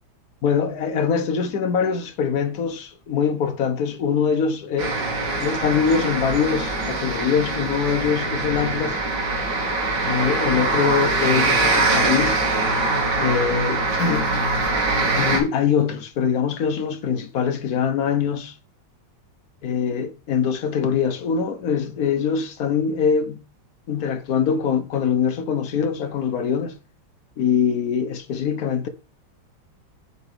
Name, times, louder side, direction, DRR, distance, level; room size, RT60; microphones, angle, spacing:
voice 1, 0.4-5.0 5.4-9.0 10.0-12.4 13.2-14.3 15.1-18.5 19.6-23.5 23.9-26.8 27.4-28.9, left 7 dB, 55° left, 1.2 m, -23 dB
sound 1, 4.8-15.4, right 3 dB, 60° right, 2.1 m, -23 dB
7.2 x 4.4 x 4.9 m
omnidirectional pair, 2.2 m